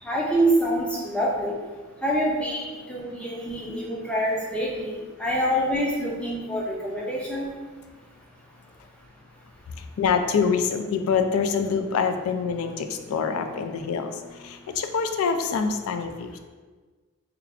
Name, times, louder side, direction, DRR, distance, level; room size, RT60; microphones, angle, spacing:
voice 1, 0.0-1.6 2.0-7.5, right 1 dB, 5° left, -4 dB, 0.5 m, -26 dB
voice 2, 10.0-14.1 14.4-16.4, left 6 dB, 75° left, 7 dB, 0.3 m, -25 dB
3.4 x 2.4 x 3.4 m, 1.4 s
head